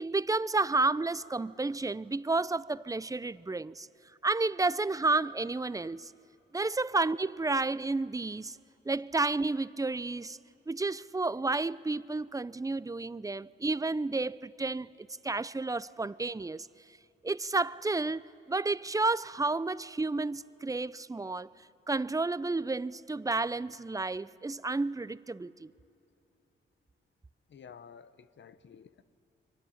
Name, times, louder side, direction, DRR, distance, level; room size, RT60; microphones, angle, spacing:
voice 1, 0.0-3.9 4.2-6.1 6.5-8.6 8.9-10.4 10.7-14.9 15.2-16.7 17.2-21.5 21.9-25.7, right 3 dB, 15° right, 0.5 m, -31 dB
voice 2, 27.5-29.0, left 7 dB, 60° left, 1.0 m, -52 dB
29.0 x 23.5 x 7.2 m
cardioid pair, 60°, 21 cm